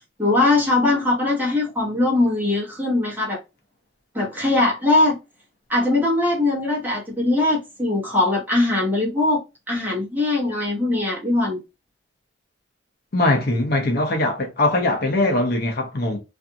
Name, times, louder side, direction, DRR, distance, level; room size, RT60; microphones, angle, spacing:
voice 1, 0.2-3.4 4.1-5.2 5.7-11.6, left 2 dB, 10° right, 1.0 m, -21 dB
voice 2, 13.1-16.2, left 2 dB, 50° left, 0.6 m, -21 dB
2.5 x 2.4 x 2.7 m
head